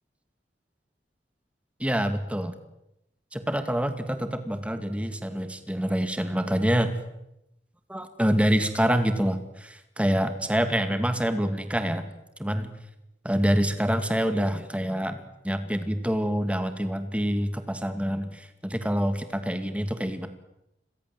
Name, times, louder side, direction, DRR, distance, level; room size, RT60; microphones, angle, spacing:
voice 1, 1.8-2.6 3.3-7.0 7.9-12.1 12.4-12.7 13.2-20.3, equal, 5° right, 9 dB, 2.2 m, -26 dB
30.0 x 22.5 x 7.8 m, 0.86 s
head